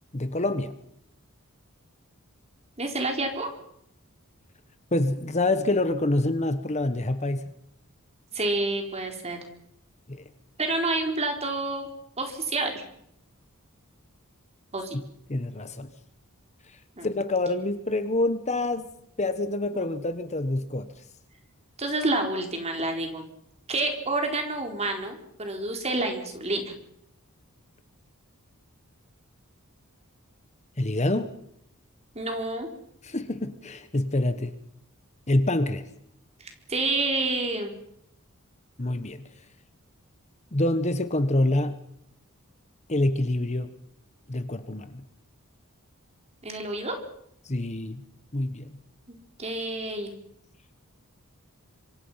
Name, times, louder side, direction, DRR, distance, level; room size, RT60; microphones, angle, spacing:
voice 1, 0.1-0.7 4.9-7.4 10.1-10.2 14.9-15.0 15.3-15.9 17.0-18.9 19.2-20.9 30.8-31.3 33.0-34.5 35.3-35.9 38.8-39.2 40.5-41.8 42.9-43.7 44.3-45.0 47.4-48.0 48.3-48.7, left 2 dB, 30° left, 10 dB, 1.3 m, -26 dB
voice 2, 2.8-3.5 8.3-9.4 10.6-11.9 12.2-12.8 14.7-15.0 17.0-17.1 19.7-19.9 21.8-23.2 23.7-26.7 32.1-32.7 36.4-37.7 46.4-47.0 49.4-50.1, right 2 dB, 30° right, 4 dB, 4.3 m, -28 dB
26.0 x 25.0 x 5.8 m, 0.74 s
head